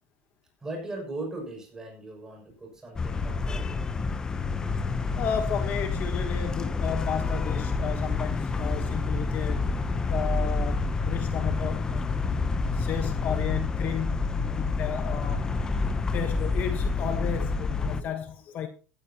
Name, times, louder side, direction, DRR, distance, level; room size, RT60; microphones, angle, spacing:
voice 1, 0.6-3.9, right 2 dB, 10° right, 6.7 m, -39 dB
sound 1, 3.0-18.0, left 3 dB, 15° left, 0.8 m, -28 dB
voice 2, 5.2-9.6 10.1-12.0 12.7-15.5 16.1-18.7, left 8 dB, 35° left, 1.3 m, -33 dB
15.5 x 14.0 x 3.0 m
cardioid pair, 160°, 5 cm